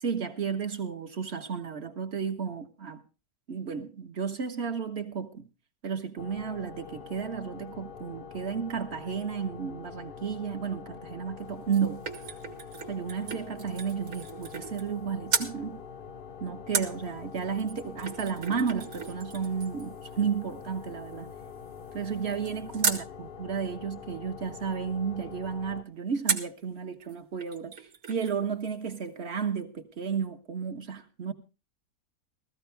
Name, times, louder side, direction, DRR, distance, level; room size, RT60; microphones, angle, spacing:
voice 1, 0.0-3.0 3.5-5.4 5.8-12.0 12.9-15.8 16.4-21.3 21.9-31.3, right 6 dB, 45° right, 1.4 m, -33 dB
sound 1, 6.2-25.8, left 6 dB, 45° left, 0.8 m, -45 dB
sound 2, 11.4-15.0 15.3-15.6 16.7-23.1 26.3-26.6 27.1-27.2 27.4-28.4 28.7-28.8, right 6 dB, 70° right, 1.9 m, -35 dB
15.5 x 14.5 x 3.3 m
omnidirectional pair, 1.6 m